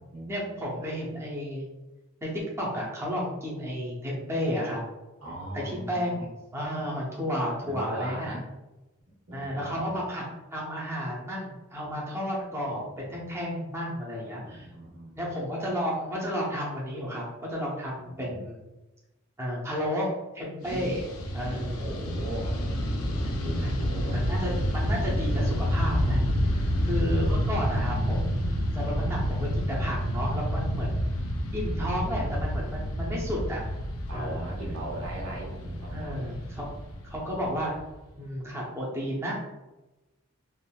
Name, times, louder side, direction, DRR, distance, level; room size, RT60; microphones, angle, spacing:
voice 1, 0.3-1.6 2.2-4.8 5.5-8.3 9.3-10.2 10.5-14.7 15.2-18.6 19.4-21.0 21.3-21.8 24.1-26.2 26.8-28.4 28.7-31.0 31.5-33.7 34.1-34.5 35.9-36.7 37.0-37.7 38.2-39.4, equal, 10° right, -5 dB, 0.6 m, -32 dB
voice 2, 5.2-6.3 7.6-8.4 9.3-9.8 11.8-11.9 12.8-13.2 14.3-15.2 18.0-18.4 20.6-20.9 21.4-24.2 26.5-27.1 31.1-31.3 32.7-32.9 34.1-36.2, right 1 dB, 90° right, -4 dB, 1.2 m, -39 dB
Fixed-wing aircraft airplane, 20.6-38.1, equal, 90° left, 0.5 m, -29 dB
3.5 x 2.5 x 2.2 m, 1.0 s
head